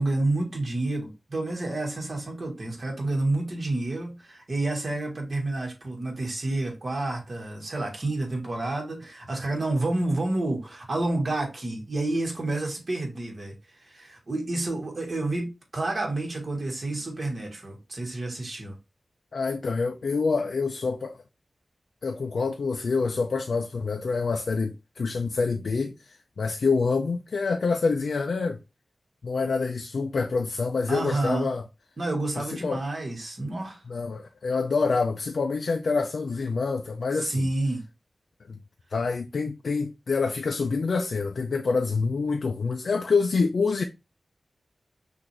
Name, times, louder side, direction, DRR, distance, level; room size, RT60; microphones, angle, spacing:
voice 1, 0.0-18.8 30.9-31.5 32.0-33.8 37.2-37.8, right 2 dB, 50° right, 1.7 m, -29 dB
voice 2, 19.3-21.2 22.0-28.6 29.2-31.6 32.4-32.8 33.9-37.5 38.5-38.6 38.9-43.8, left 4 dB, 85° left, 0.4 m, -26 dB
5.9 x 2.6 x 3.2 m
wide cardioid pair, 85°, 0 cm